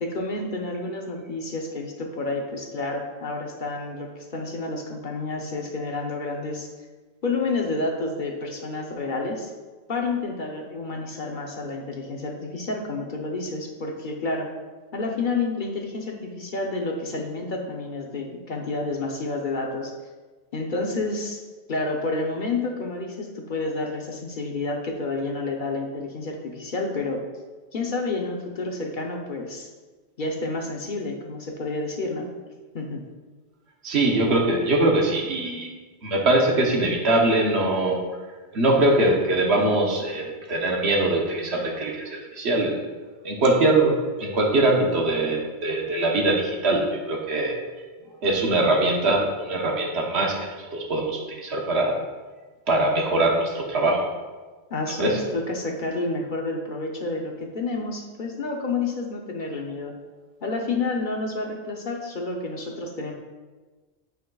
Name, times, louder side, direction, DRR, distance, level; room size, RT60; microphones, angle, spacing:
voice 1, 0.0-6.7 7.2-9.5 9.9-14.5 14.9-19.9 20.5-21.4 21.7-27.2 27.7-29.7 30.2-32.3 32.7-33.0 54.7-59.9 60.4-63.1, left 3 dB, 50° left, 1 dB, 0.8 m, -29 dB
voice 2, 33.8-35.7 36.0-38.0 38.5-42.8 43.2-47.6 48.2-52.0 52.7-54.0 55.0-55.2, right 2 dB, 75° right, 0 dB, 1.3 m, -22 dB
8.9 x 5.3 x 2.3 m, 1.3 s
omnidirectional pair, 1.1 m